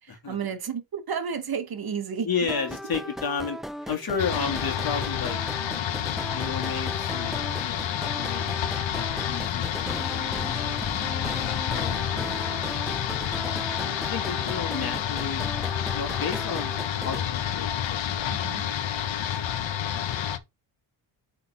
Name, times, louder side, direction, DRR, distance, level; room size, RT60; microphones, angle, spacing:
voice 1, 0.0-2.5 11.9-12.1 18.3-18.6, right 6 dB, 50° right, 1.2 m, -32 dB
voice 2, 2.3-3.6 3.9-5.4 6.3-8.4 8.9-12.9 13.7-15.4 15.9-16.7 17.0-18.6 19.2-19.4, left 5 dB, 45° left, 2.2 m, -33 dB
sound 1, 2.5-17.2, equal, ahead, 0.4 m, -37 dB
sound 2, 4.2-20.4, left 10 dB, 65° left, 1.0 m, -29 dB
5.8 x 4.2 x 4.3 m
cardioid pair, 70°, 48 cm